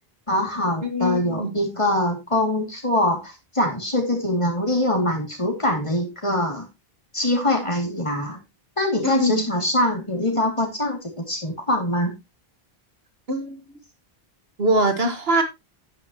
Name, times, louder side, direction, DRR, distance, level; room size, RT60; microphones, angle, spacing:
voice 1, 0.3-6.6 7.1-8.4 8.8-12.1, left 1 dB, 30° left, 2.7 m, -23 dB
voice 2, 0.8-1.6 9.0-9.4 13.3-13.8 14.6-15.4, right 1 dB, 75° right, 1.9 m, -23 dB
9.4 x 9.4 x 3.0 m
omnidirectional pair, 1.0 m